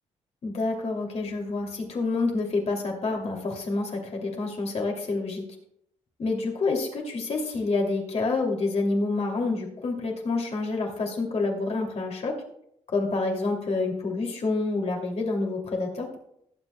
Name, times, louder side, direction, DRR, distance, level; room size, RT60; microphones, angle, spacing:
voice 1, 0.4-5.4 6.2-12.3 12.9-16.2, left 3 dB, 55° left, 0 dB, 2.7 m, -28 dB
19.0 x 8.0 x 2.3 m, 0.73 s
cardioid pair, 85°, 13 cm